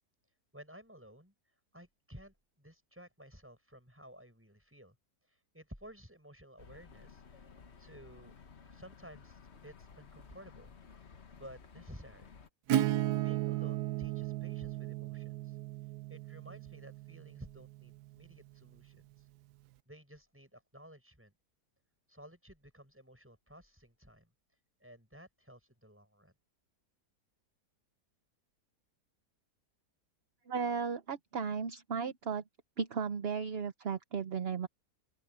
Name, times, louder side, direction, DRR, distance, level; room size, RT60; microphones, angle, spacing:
voice 1, 0.5-1.3 1.7-5.0 5.3-7.4 7.8-8.3 8.6-10.7 11.3-12.4 13.2-15.6 16.1-19.3 19.9-21.3 22.1-24.3 24.8-26.3, equal, 5° right, 7.6 m, -54 dB
sound 1, 6.6-12.5, left 5 dB, 45° left, 1.4 m, -55 dB
Acoustic guitar / Strum, 12.7-18.2, right 13 dB, 80° right, 1.2 m, -35 dB
voice 2, 30.5-32.4 32.8-34.7, right 6 dB, 45° right, 0.9 m, -35 dB
open air
omnidirectional pair, 1.8 m